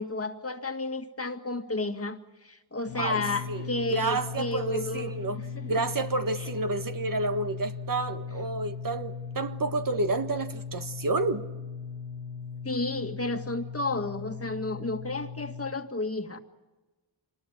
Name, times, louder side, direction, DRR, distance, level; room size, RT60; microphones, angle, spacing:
voice 1, 0.0-5.2 5.6-5.7 6.4-6.5 12.6-16.4, left 2 dB, 30° left, 1.9 m, -32 dB
sound 1, 2.9-15.7, left 6 dB, 70° left, 2.3 m, -38 dB
voice 2, 3.5-5.4 5.7-11.4, right 3 dB, 45° right, 1.5 m, -30 dB
25.5 x 20.5 x 8.8 m
cardioid pair, 75°, 47 cm